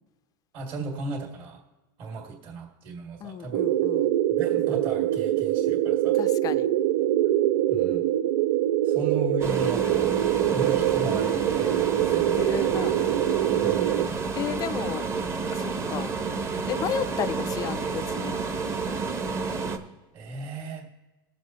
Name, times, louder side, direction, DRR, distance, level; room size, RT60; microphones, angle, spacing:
voice 1, 0.5-1.6 2.0-3.7 4.3-6.2 7.7-8.0 8.8-10.2 10.4-12.5 13.6-14.3 20.1-20.9, right 3 dB, 45° right, 2.5 m, -36 dB
voice 2, 3.2-4.2 6.1-6.7 12.3-13.0 14.4-15.0 15.5-16.2 16.7-18.4, left 9 dB, 30° left, 0.5 m, -33 dB
sound 1, 3.5-14.1, right 13 dB, 80° right, 0.5 m, -24 dB
sound 2, 9.4-19.8, right 4 dB, 25° right, 1.0 m, -30 dB
20.5 x 7.3 x 3.1 m
supercardioid pair, 135°, 12 cm